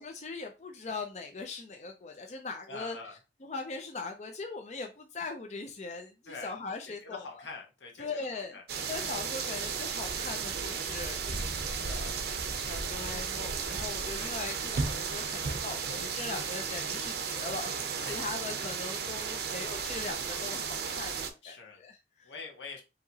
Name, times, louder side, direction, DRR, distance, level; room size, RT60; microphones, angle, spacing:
voice 1, 0.0-3.0 3.4-7.4 8.0-8.6 8.9-22.3, left 4 dB, 40° left, 0.4 m, -40 dB
voice 2, 2.7-3.2 6.3-6.6 6.8-8.6 8.9-9.1 14.1-14.3 18.0-18.3 21.4-21.8 22.2-22.8, left 4 dB, 85° left, 1.2 m, -45 dB
sound 1, 8.7-21.3, right 5 dB, 60° right, 0.6 m, -34 dB
4.9 x 2.9 x 2.8 m
head